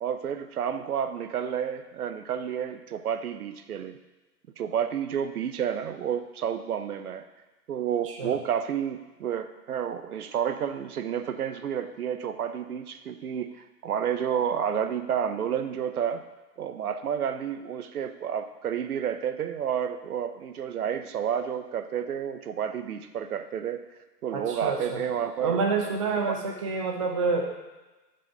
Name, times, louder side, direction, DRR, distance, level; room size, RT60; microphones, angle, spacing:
voice 1, 0.0-4.0 4.6-7.2 7.7-13.5 13.8-16.2 16.6-23.8 24.2-25.6 25.8-26.4, right 8 dB, 60° right, 10 dB, 0.7 m, -30 dB
voice 2, 24.3-25.0 25.4-27.4, right 4 dB, 20° right, 1 dB, 0.4 m, -28 dB
7.1 x 5.3 x 5.4 m, 1.1 s
figure-of-eight pair, 125°, 50 cm